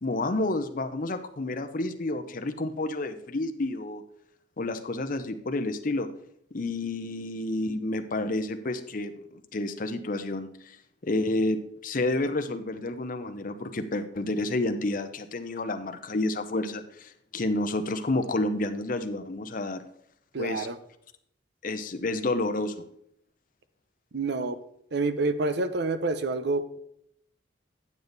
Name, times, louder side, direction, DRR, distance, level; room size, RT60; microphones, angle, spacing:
voice 1, 0.0-4.0 4.6-6.1 6.5-9.1 9.5-10.8 11.0-19.8 20.4-20.7 21.6-22.8, left 2 dB, 45° left, 8 dB, 0.7 m, -30 dB
voice 2, 20.3-20.8 24.1-24.6 24.9-26.8, right 3 dB, 60° right, 12 dB, 0.7 m, -28 dB
9.5 x 7.0 x 4.0 m, 0.71 s
head